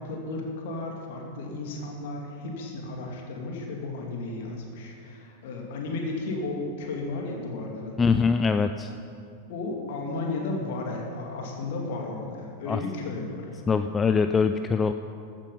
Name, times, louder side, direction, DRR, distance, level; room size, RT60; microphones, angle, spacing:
voice 1, 0.0-8.0 9.5-13.5, left 2 dB, 55° left, 0 dB, 2.5 m, -34 dB
voice 2, 8.0-8.9 12.7-12.8 13.7-14.9, left 5 dB, 15° left, 8 dB, 0.4 m, -23 dB
14.5 x 9.0 x 5.7 m, 2.5 s
figure-of-eight pair, 90°, 0 cm